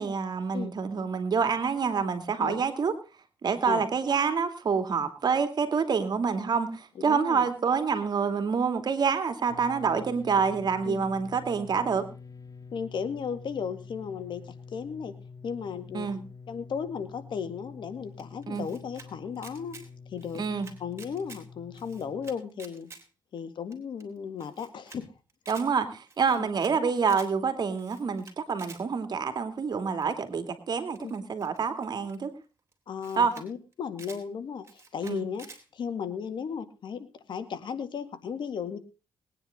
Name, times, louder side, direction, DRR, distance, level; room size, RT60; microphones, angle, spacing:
voice 1, 0.0-2.9 3.4-12.0 15.9-16.2 18.5-18.7 20.3-20.7 25.5-32.3 33.2-33.3 35.0-35.2, right 5 dB, 55° right, 9 dB, 2.7 m, -27 dB
voice 2, 7.0-7.5 10.9-11.1 12.7-15.1 15.4-16.1 16.5-19.8 20.1-20.4 20.8-22.9 23.3-25.1 26.4-26.5 31.0-31.1 32.9-35.5 35.7-38.8, left 6 dB, 70° left, 10 dB, 2.0 m, -35 dB
sound 1, 9.5-22.3, left 5 dB, 45° left, 1.5 m, -47 dB
Camera, 18.2-19.1 19.4-19.9 20.2-21.4 21.7-23.0 23.4-23.5 23.7-23.8 24.0-24.1 24.4-25.0 25.3-25.7 26.1-26.7 27.0-27.3 27.8-28.8 30.0-30.3 30.9-32.2 32.7-32.8 33.0-33.5 33.7-34.2 34.6-35.6, right 4 dB, 35° right, 3.7 m, -49 dB
21.0 x 9.8 x 3.9 m, 0.32 s
cardioid pair, 75°, 8 cm